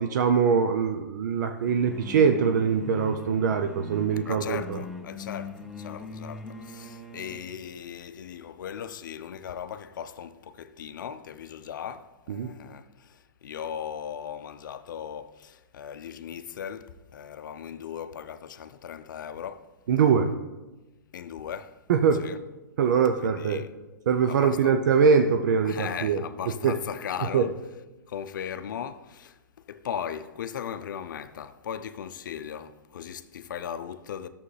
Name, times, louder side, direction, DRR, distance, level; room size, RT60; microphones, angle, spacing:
voice 1, 0.0-4.8 12.3-12.5 19.9-20.3 21.9-22.2 22.8-23.6 24.1-26.2 26.6-26.7 27.3-27.5, right 6 dB, 65° right, 0.6 m, -23 dB
sound 1, 1.7-7.5, left 2 dB, ahead, 0.7 m, -41 dB
voice 2, 4.3-19.7 21.1-21.8 22.2-22.4 23.2-23.7 24.3-24.8 25.6-27.5 28.1-29.4 29.7-34.3, left 8 dB, 70° left, 0.5 m, -38 dB
11.0 x 7.0 x 3.3 m
hypercardioid pair, 125°, 11 cm